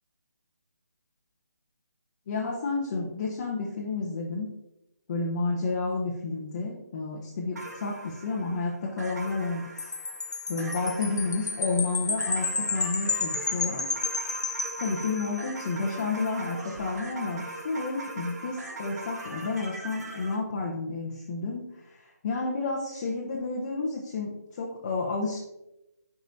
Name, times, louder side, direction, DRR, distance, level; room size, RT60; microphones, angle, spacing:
voice 1, 2.3-4.5 5.1-9.9 10.5-13.9 14.8-25.4, left 3 dB, 30° left, -2 dB, 0.8 m, -31 dB
sound 1, 7.5-20.4, right 2 dB, 70° right, 1.9 m, -41 dB
Wind chime, 9.8-15.5, left 4 dB, 90° left, 1.1 m, -31 dB
9.1 x 4.9 x 2.7 m, 0.91 s
hypercardioid pair, 165°, 9 cm